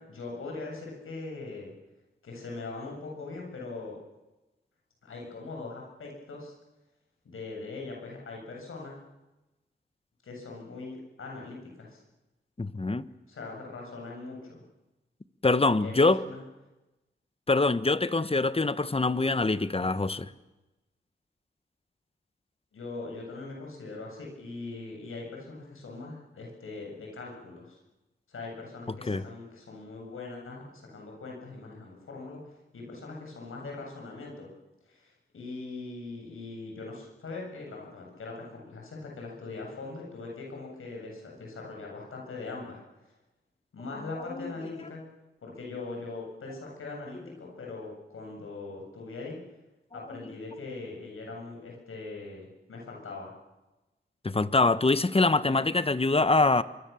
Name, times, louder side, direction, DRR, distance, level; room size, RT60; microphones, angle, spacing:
voice 1, 0.0-1.7 2.2-4.0 5.0-6.5 7.2-9.0 10.2-12.0 13.3-14.6 15.8-15.9 16.2-16.4 22.7-27.8 28.3-32.4 32.7-34.5 34.9-42.8 43.7-45.0 45.4-49.4 49.9-53.3, left 3 dB, 85° left, 0 dB, 7.8 m, -41 dB
voice 2, 12.6-13.0 15.4-16.2 17.5-20.3 29.1-29.2 44.3-44.5 54.2-56.6, left 3 dB, 30° left, 14 dB, 1.2 m, -24 dB
25.5 x 23.5 x 7.1 m, 1.0 s
cardioid pair, 60°, 21 cm